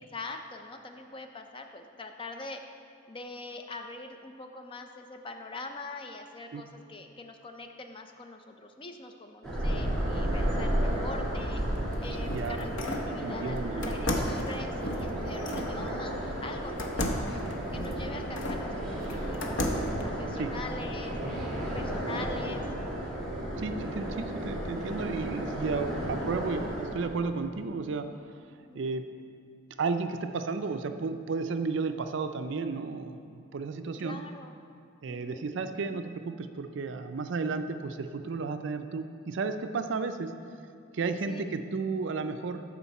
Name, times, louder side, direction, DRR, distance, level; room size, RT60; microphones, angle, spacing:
voice 1, 0.0-2.6 3.1-11.6 12.0-17.4 17.7-19.6 20.0-22.7 28.5-28.9 34.0-34.5 35.1-35.5 41.3-41.4, left 3 dB, 25° left, 5 dB, 0.4 m, -43 dB
sound 1, 9.4-27.4, right 1 dB, ahead, 2.2 m, -33 dB
sound 2, 11.8-13.1 13.8-15.7 16.8-18.6 19.1-20.0, left 1 dB, 60° left, 0.8 m, -34 dB
voice 2, 12.1-12.6 13.2-13.9 20.4-20.5 23.6-28.1 28.7-29.0 29.8-34.2 35.0-40.3 40.9-42.6, right 4 dB, 60° right, 8 dB, 0.4 m, -33 dB
13.0 x 4.4 x 4.1 m, 2.4 s
head